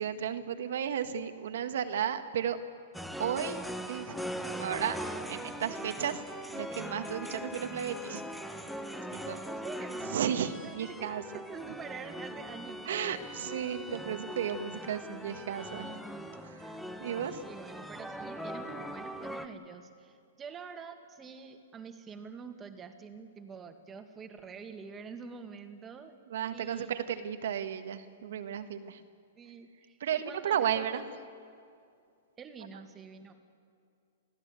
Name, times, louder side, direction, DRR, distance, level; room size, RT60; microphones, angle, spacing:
voice 1, 0.0-2.6 3.2-4.1 4.6-5.0 5.3-6.2 6.5-8.2 9.1-9.4 10.1-11.2 12.8-16.0 16.4-17.4 26.3-29.0 30.0-31.0, right 9 dB, 70° right, 8 dB, 1.5 m, -34 dB
sound 1, 2.9-19.5, equal, ahead, 1.3 m, -41 dB
voice 2, 9.5-10.2 10.6-12.9 17.4-26.1 26.5-26.9 29.4-31.0 32.4-33.3, right 5 dB, 20° right, 6 dB, 2.0 m, -46 dB
27.5 x 16.0 x 8.3 m, 2.4 s
hypercardioid pair, 130°, 0 cm